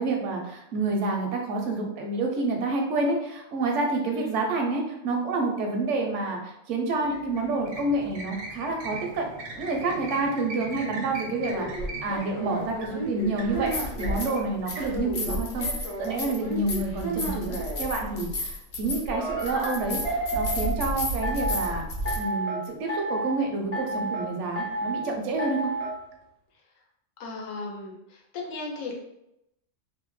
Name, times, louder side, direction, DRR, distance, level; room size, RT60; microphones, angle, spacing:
voice 1, 0.0-9.3 9.5-11.7 12.0-13.7 14.0-20.0 20.3-21.8 22.1-25.7, right 3 dB, 75° right, 2 dB, 0.9 m, -28 dB
sound 1, 6.9-16.2, right 2 dB, 55° right, 0.5 m, -41 dB
sound 2, 11.4-14.3 14.9-17.8 19.1-20.8 21.2-21.7 22.1-22.6 22.9-23.4 23.7-24.3 24.6-25.0 25.4-25.9, right 2 dB, 40° left, 0.6 m, -32 dB
sound 3, 11.8-11.9 13.4-14.4 14.7-22.2, left 1 dB, 60° left, 0.9 m, -32 dB
voice 2, 27.2-28.9, left 3 dB, 85° left, 0 dB, 1.1 m, -36 dB
2.7 x 2.1 x 3.0 m, 0.83 s
omnidirectional pair, 1.3 m